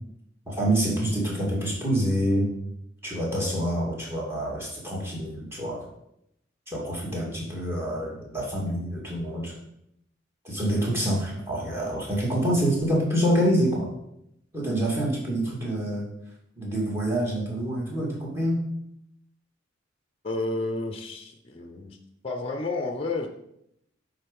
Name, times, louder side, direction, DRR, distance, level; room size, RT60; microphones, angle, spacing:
voice 1, 0.5-2.5 3.0-5.8 6.7-9.5 10.4-13.9 14.5-16.1 16.6-18.6, equal, 15° right, -3 dB, 2.2 m, -26 dB
voice 2, 20.2-22.0 22.2-23.3, left 2 dB, 30° left, 5 dB, 0.6 m, -31 dB
9.1 x 3.8 x 5.2 m, 0.80 s
head